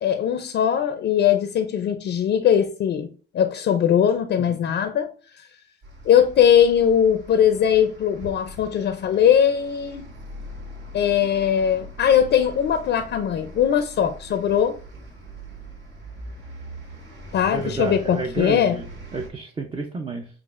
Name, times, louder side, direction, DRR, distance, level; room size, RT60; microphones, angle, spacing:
voice 1, 0.0-5.1 6.1-10.1 10.9-14.8 17.3-18.8, left 9 dB, 60° left, 0.5 m, -20 dB
voice 2, 4.4-4.8 17.5-18.9 19.1-20.3, right 3 dB, 25° right, 0.6 m, -30 dB
sound 1, 5.8-19.3, right 1 dB, 70° right, 2.1 m, -41 dB
7.2 x 2.5 x 2.5 m
cardioid pair, 90°, 20 cm